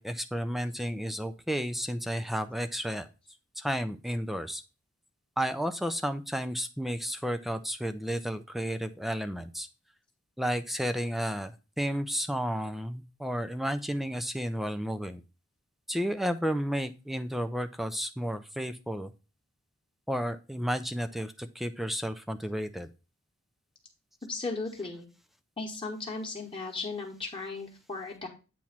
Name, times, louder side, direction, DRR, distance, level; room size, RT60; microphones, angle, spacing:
voice 1, 0.0-3.1 3.6-4.6 5.4-9.7 10.4-11.5 11.8-15.2 15.9-19.1 20.1-22.9, equal, ahead, 9 dB, 0.3 m, -32 dB
voice 2, 24.3-25.1 25.6-28.3, left 3 dB, 25° left, 0 dB, 1.0 m, -36 dB
8.5 x 3.0 x 5.7 m, 0.31 s
head